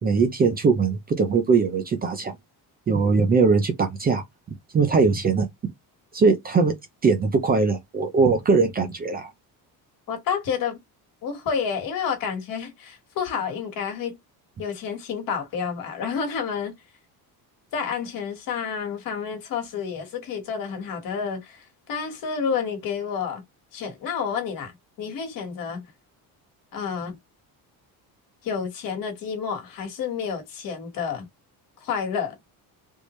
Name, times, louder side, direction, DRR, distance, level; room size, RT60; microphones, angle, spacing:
voice 1, 0.0-2.3 2.9-4.2 4.7-5.5 6.1-6.7 7.0-9.3, right 4 dB, 25° right, 0.5 m, -21 dB
voice 2, 10.1-10.8 11.2-14.2 14.6-16.7 17.7-23.4 23.7-25.8 26.7-27.2 28.4-31.3 31.8-32.4, left 6 dB, 60° left, 1.6 m, -29 dB
3.4 x 2.5 x 3.1 m
cardioid pair, 165°, 39 cm